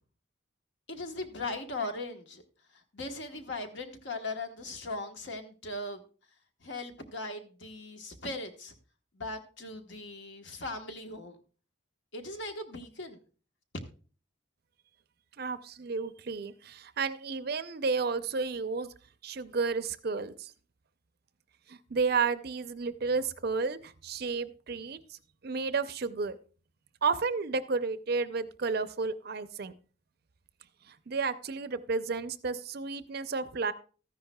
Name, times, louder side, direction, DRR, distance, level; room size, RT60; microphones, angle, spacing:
voice 1, 0.9-2.4 2.7-6.0 6.6-8.7 9.1-11.4 12.1-13.2, left 2 dB, 60° left, 5 dB, 1.2 m, -39 dB
voice 2, 15.4-18.9 19.2-20.5 21.7-25.2 25.4-26.4 27.0-29.7 30.9-33.7, right 4 dB, 50° right, 13 dB, 0.5 m, -32 dB
13.5 x 10.5 x 2.3 m, 0.38 s
head